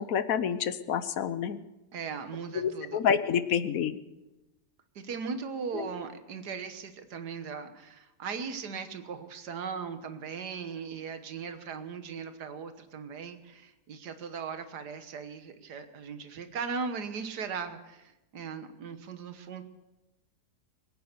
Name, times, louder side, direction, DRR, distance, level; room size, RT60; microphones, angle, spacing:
voice 1, 0.0-1.6 2.5-4.0 5.7-5.9, left 8 dB, 65° left, 13 dB, 1.1 m, -28 dB
voice 2, 1.9-3.0 5.0-19.6, right 5 dB, 85° right, 9 dB, 1.8 m, -38 dB
22.0 x 9.4 x 6.7 m, 1.0 s
omnidirectional pair, 1.7 m